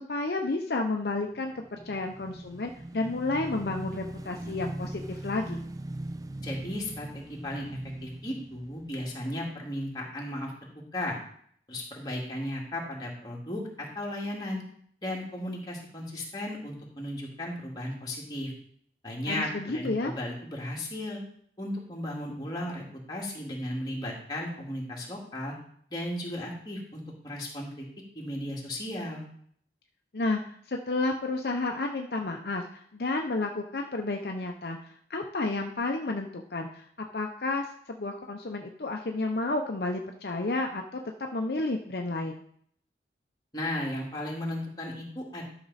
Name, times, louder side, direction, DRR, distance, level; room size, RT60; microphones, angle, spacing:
voice 1, 0.0-5.6 19.3-20.1 30.1-30.4 30.7-34.8 35.1-37.7 38.0-42.4, left 2 dB, 60° left, 3 dB, 0.7 m, -31 dB
Motorcycle / Engine, 1.4-9.9, right 1 dB, 20° right, 0.3 m, -40 dB
voice 2, 6.4-7.7 8.0-10.5 10.9-11.2 11.7-14.6 15.0-18.5 19.0-21.2 21.6-25.5 25.9-27.9 28.2-29.3 43.5-45.4, left 1 dB, 25° left, -2 dB, 2.2 m, -35 dB
12.0 x 6.0 x 4.1 m, 0.62 s
head